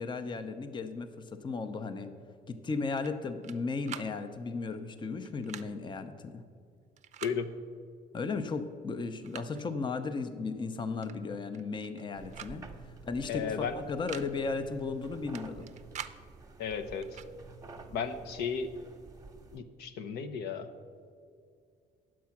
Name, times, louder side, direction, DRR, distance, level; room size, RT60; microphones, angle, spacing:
voice 1, 0.0-2.1 2.5-6.4 8.1-12.6 13.0-15.7, left 4 dB, 25° left, 9 dB, 0.6 m, -35 dB
sound 1, 3.0-3.6 3.8-4.1 5.3-5.7 7.0-7.4 8.5-8.6 9.0-9.7 11.0-11.2 11.5-12.0 12.3-12.6 12.8-12.9 13.9-14.3 15.4-16.2 17.0-17.3, right 9 dB, 45° right, 0.5 m, -44 dB
sound 2, 12.1-19.6, right 4 dB, 20° right, 1.0 m, -50 dB
voice 2, 13.3-13.8 16.6-17.2 17.9-18.7 19.5-20.7, left 6 dB, 80° left, 7 dB, 0.8 m, -34 dB
9.3 x 7.5 x 5.9 m, 2.2 s
cardioid pair, 110°, 17 cm